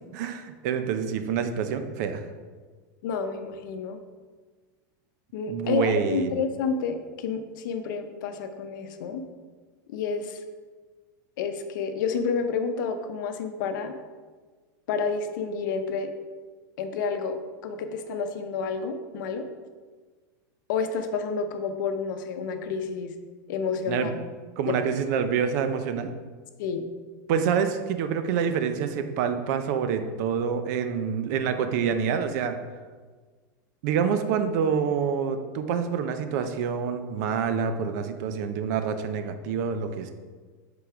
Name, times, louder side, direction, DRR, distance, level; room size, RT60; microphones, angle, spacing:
voice 1, 0.1-2.2 5.5-6.3 23.9-24.1 24.6-26.1 27.3-32.6 33.8-40.1, right 7 dB, 60° right, 9 dB, 0.6 m, -27 dB
voice 2, 3.0-4.0 5.3-9.2 9.9-10.4 11.4-13.9 14.9-16.1 16.8-17.4 17.6-19.5 20.7-23.1 23.5-24.1 24.7-24.8 25.3-25.4 26.6-26.8, left 5 dB, 70° left, 7 dB, 0.7 m, -29 dB
5.7 x 3.9 x 4.9 m, 1.4 s
supercardioid pair, 150°, 11 cm